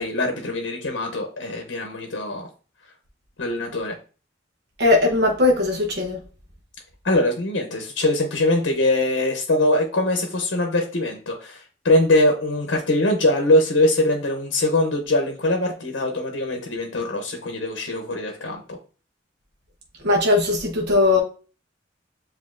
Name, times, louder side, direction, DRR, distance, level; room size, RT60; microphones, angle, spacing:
voice 1, 0.0-2.5 3.4-4.0 7.0-18.8, left 1 dB, 80° left, 3 dB, 0.7 m, -22 dB
voice 2, 4.8-6.2 20.0-21.2, left 2 dB, 60° right, 1 dB, 0.9 m, -19 dB
7.3 x 2.7 x 2.5 m, 0.36 s
head